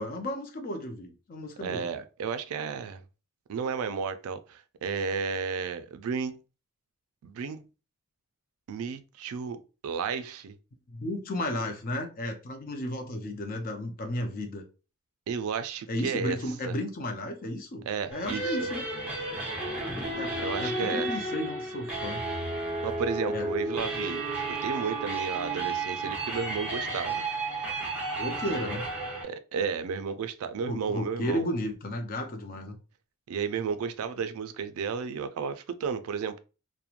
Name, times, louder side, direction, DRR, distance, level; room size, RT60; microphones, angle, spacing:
voice 1, 0.0-1.9 10.9-14.7 15.9-18.9 20.2-22.2 23.3-23.5 28.2-28.8 30.7-32.8, left 1 dB, 40° left, 0.5 m, -33 dB
voice 2, 1.6-3.0 3.5-6.4 7.2-7.7 8.7-10.6 15.3-16.4 16.6-16.7 17.9-18.7 20.4-21.1 22.8-27.3 28.5-28.6 29.2-31.5 33.3-36.4, right 6 dB, 70° right, 0.3 m, -33 dB
sound 1, 18.1-29.2, right 2 dB, 5° right, 0.8 m, -32 dB
2.9 x 2.1 x 2.4 m
head